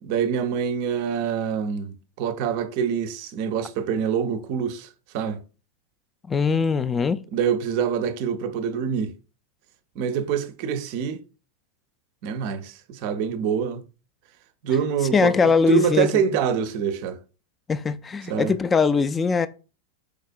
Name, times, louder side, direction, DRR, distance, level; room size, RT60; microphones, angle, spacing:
voice 1, 0.0-5.4 7.3-9.1 10.0-11.2 12.2-13.8 14.6-15.3 15.7-17.2 18.3-18.5, right 7 dB, 45° right, 0.5 m, -25 dB
voice 2, 6.3-7.2 15.1-16.1 17.7-19.5, left 5 dB, 15° left, 0.3 m, -21 dB
4.8 x 4.1 x 2.2 m
figure-of-eight pair, 90°, 0 cm